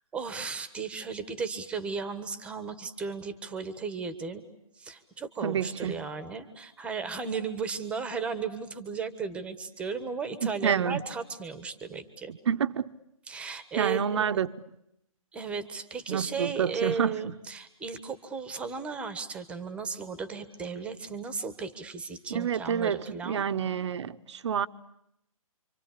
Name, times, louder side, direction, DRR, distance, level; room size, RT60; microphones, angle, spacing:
voice 1, 0.1-4.4 4.8-12.3 13.3-14.3 15.3-23.4, right 5 dB, 5° right, 1.4 m, -35 dB
voice 2, 5.4-6.1 10.4-11.0 12.3-12.9 13.8-14.8 16.1-17.4 22.3-24.7, right 8 dB, 50° right, 1.0 m, -29 dB
27.5 x 25.5 x 8.5 m
hypercardioid pair, 155°, 18 cm